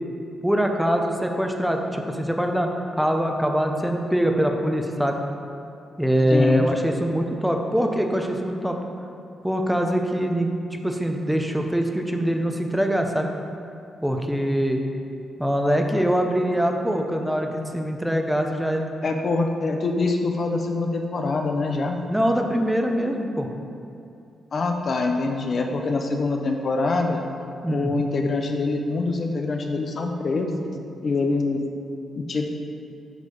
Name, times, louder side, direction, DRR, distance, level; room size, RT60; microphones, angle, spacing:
voice 1, 0.4-5.2 6.0-8.8 9.4-10.5 10.8-13.3 14.0-14.8 15.4-18.8 22.1-23.5 27.6-27.9, equal, 5° right, 3 dB, 0.8 m, -23 dB
voice 2, 6.3-6.7 19.0-22.0 24.5-27.2 27.7-30.6 31.0-31.6 32.1-32.5, left 3 dB, 55° left, 3 dB, 0.7 m, -24 dB
8.1 x 3.3 x 5.5 m, 2.6 s
supercardioid pair, 50°, 0 cm